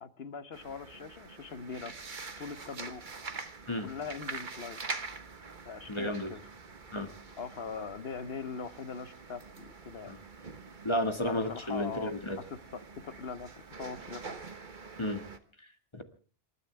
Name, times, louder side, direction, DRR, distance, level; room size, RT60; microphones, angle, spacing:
voice 1, 0.0-1.9 2.4-3.0 3.8-4.8 5.6-6.4 7.4-10.1 11.3-14.4, left 5 dB, 70° left, 13 dB, 1.3 m, -41 dB
sound 1, 0.5-15.4, right 4 dB, 50° right, 1.4 m, -45 dB
voice 2, 5.9-6.3 6.9-7.1 10.1-10.2 10.8-12.4 15.0-15.2 15.9-16.0, left 1 dB, 25° left, 7 dB, 2.0 m, -32 dB
27.5 x 13.0 x 3.4 m, 0.39 s
omnidirectional pair, 1.1 m